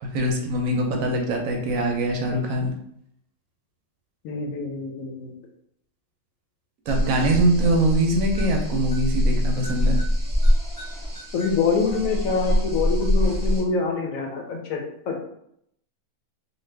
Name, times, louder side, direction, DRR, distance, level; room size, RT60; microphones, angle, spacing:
voice 1, 0.0-2.7 6.9-10.0, right 1 dB, 70° right, 2 dB, 0.9 m, -23 dB
voice 2, 4.2-5.3 11.3-14.8 15.1-15.2, left 4 dB, 70° left, 2 dB, 1.0 m, -25 dB
sound 1, 6.9-13.6, equal, 25° right, 0.4 m, -24 dB
2.7 x 2.4 x 3.2 m, 0.73 s
omnidirectional pair, 1.6 m